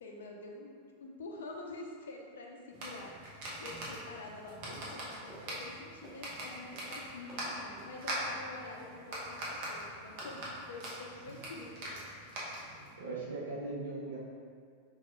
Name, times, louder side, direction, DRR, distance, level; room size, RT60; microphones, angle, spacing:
voice 1, 0.0-12.0, left 2 dB, 65° left, 1 dB, 0.5 m, -47 dB
sound 1, 2.7-12.9, right 1 dB, 50° right, 1.0 m, -42 dB
sound 2, 4.7-7.9 8.7-8.9 9.4-9.9 10.2-11.5, right 1 dB, 20° right, 1.2 m, -55 dB
voice 2, 12.6-14.2, right 3 dB, 65° right, -4 dB, 0.7 m, -40 dB
5.3 x 3.5 x 2.2 m, 2.2 s
figure-of-eight pair, 90°, 0 cm